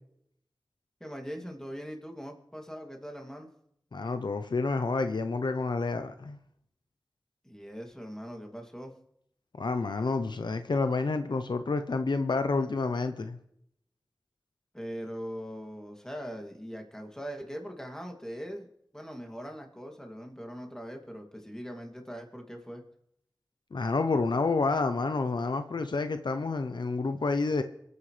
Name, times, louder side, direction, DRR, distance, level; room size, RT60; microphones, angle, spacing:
voice 1, 1.0-3.5 7.4-8.9 14.7-18.7 18.9-22.8, equal, 5° left, 2.6 m, -41 dB
voice 2, 3.9-6.4 9.5-13.4 23.7-27.6, left 3 dB, 85° left, 0.7 m, -29 dB
27.5 x 9.6 x 3.3 m
wide cardioid pair, 50°, 8 cm